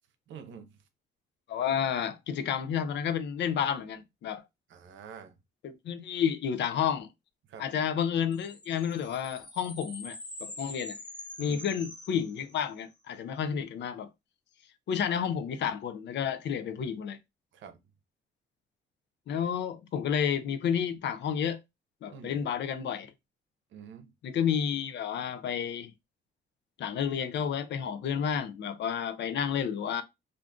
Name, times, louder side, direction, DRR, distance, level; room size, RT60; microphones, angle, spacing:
voice 1, 0.3-0.7 4.7-5.3 7.5-7.7 11.4-11.6 17.5-17.8 22.1-22.4 23.7-24.1, right 7 dB, 70° right, 0.7 m, -46 dB
voice 2, 1.5-4.4 5.6-7.1 7.6-11.0 11.4-14.1 14.9-17.2 19.3-21.6 22.0-23.1 24.2-25.9 26.8-30.0, left 8 dB, 65° left, 0.5 m, -31 dB
sound 1, 8.3-12.9, left 1 dB, 20° left, 1.0 m, -45 dB
2.5 x 2.4 x 3.5 m
cardioid pair, 90°, 20 cm